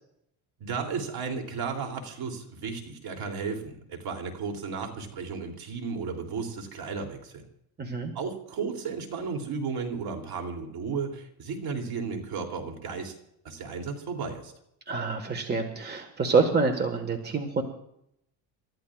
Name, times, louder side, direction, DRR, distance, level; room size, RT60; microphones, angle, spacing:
voice 1, 0.6-7.5 8.1-13.1 13.4-14.5, right 5 dB, 55° right, 3 dB, 3.1 m, -34 dB
voice 2, 7.8-8.1 14.9-17.6, right 4 dB, 20° right, 5 dB, 1.6 m, -26 dB
29.5 x 13.5 x 2.4 m, 0.76 s
cardioid pair, 125°, 44 cm